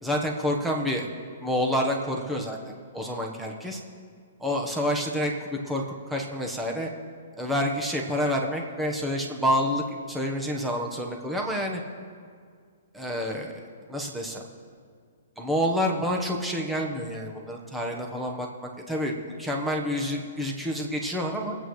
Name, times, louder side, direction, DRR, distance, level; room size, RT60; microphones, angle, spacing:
voice 1, 0.0-1.1 1.4-3.8 4.4-5.8 6.1-6.9 7.4-11.8 12.9-13.6 13.9-14.4 15.4-21.5, equal, 5° right, 0 dB, 1.2 m, -28 dB
23.0 x 8.5 x 3.2 m, 2.1 s
hypercardioid pair, 155°, 0 cm